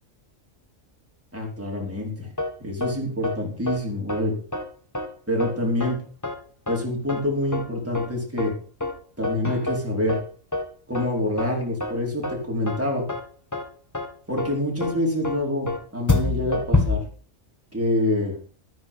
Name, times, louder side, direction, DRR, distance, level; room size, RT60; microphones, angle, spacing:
voice 1, 1.3-2.3 2.6-4.3 5.3-6.0 6.7-8.5 9.2-10.2 10.9-13.0 14.3-17.0 17.7-18.4, left 1 dB, 10° right, -2 dB, 4.5 m, -26 dB
sound 1, 2.4-2.5 2.8-2.9 3.2-3.3 3.7-3.8 4.1-4.2 4.5-4.6 4.9-5.1 5.4-5.5 5.8-5.9 6.2-6.3 6.7-6.8 7.1-7.2 7.5-7.6 7.9-8.1 8.4-8.5 8.8-8.9 9.2-9.8 10.1-10.2 10.5-10.6 10.9-11.1 11.4-11.5 11.8-11.9 12.2-12.3 12.7-12.8 13.1-13.2 13.5-13.6 13.9-14.1 14.4-14.5 14.8-14.9 15.2-15.3 15.7-15.8 16.1-16.9, left 2 dB, 15° left, 1.8 m, -25 dB
13.0 x 9.5 x 5.5 m, 0.41 s
omnidirectional pair, 1.3 m